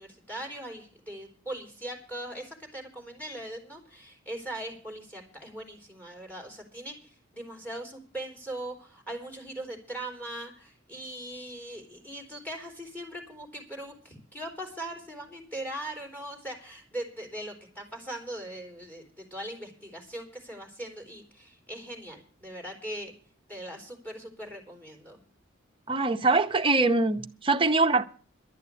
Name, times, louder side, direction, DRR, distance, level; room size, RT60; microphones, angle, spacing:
voice 1, 0.0-23.1 23.5-25.2, right 1 dB, 10° left, 3.8 m, -40 dB
voice 2, 25.9-28.0, right 3 dB, 25° right, 0.8 m, -23 dB
11.5 x 9.2 x 8.4 m
head